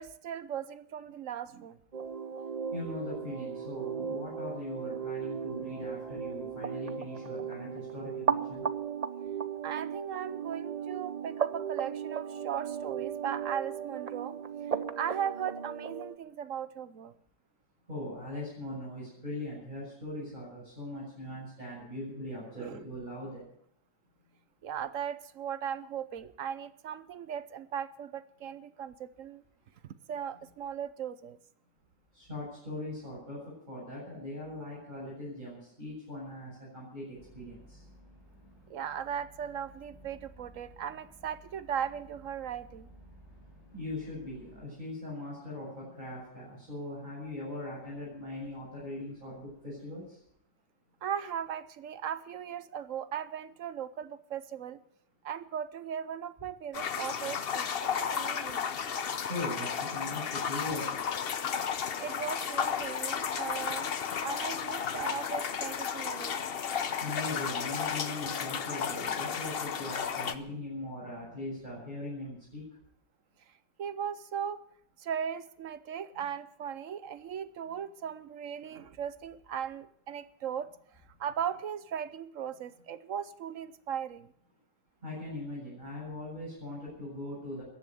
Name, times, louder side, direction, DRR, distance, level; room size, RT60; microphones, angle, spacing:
voice 1, 0.0-1.8 9.6-14.4 15.0-17.1 22.6-22.8 24.6-29.4 30.1-31.4 38.7-42.9 51.0-54.8 55.2-58.7 62.0-63.9 64.2-66.4 73.8-74.6 75.0-80.7 81.2-84.3, right 8 dB, 55° right, 14 dB, 1.0 m, -38 dB
sound 1, 1.9-16.2, right 7 dB, 80° right, 0.3 m, -36 dB
voice 2, 2.7-8.6 17.9-23.4 32.1-37.8 43.7-50.2 59.3-61.0 67.0-72.6 85.0-87.6, left 1 dB, 25° right, -8 dB, 7.7 m, -40 dB
sound 2, 37.1-44.6, equal, 70° left, 7.3 m, -56 dB
sound 3, 56.7-70.3, left 7 dB, 50° left, 0.8 m, -33 dB
15.0 x 10.5 x 9.3 m, 0.72 s
omnidirectional pair, 1.9 m